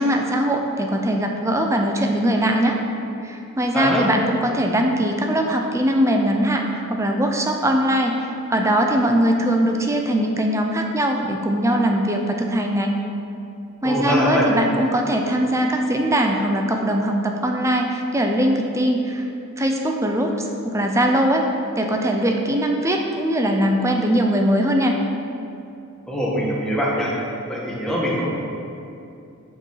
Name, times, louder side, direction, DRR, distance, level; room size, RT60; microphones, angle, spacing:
voice 1, 0.0-2.8 3.2-12.9 13.8-19.3 19.6-21.5 21.8-25.0, equal, 15° right, 2 dB, 0.5 m, -21 dB
voice 2, 13.8-14.5 26.1-27.1 27.5-28.4, equal, 5° left, -5 dB, 1.4 m, -22 dB
8.8 x 4.6 x 5.7 m, 2.7 s
head